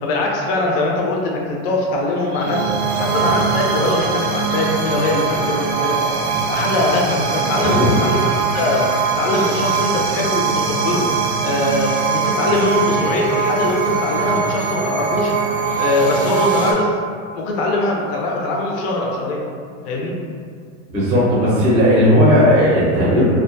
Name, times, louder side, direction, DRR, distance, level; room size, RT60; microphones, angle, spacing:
voice 1, 0.0-2.7 3.0-11.1 11.4-15.3 15.8-17.0 17.3-19.4 19.8-20.1, left 2 dB, 50° left, -2 dB, 0.5 m, -21 dB
sound 1, 2.0-16.7, right 5 dB, 60° right, 0.5 m, -21 dB
voice 2, 20.9-23.2, equal, 15° right, -8 dB, 0.6 m, -15 dB
2.3 x 2.2 x 2.5 m, 2.2 s
supercardioid pair, 155°, 39 cm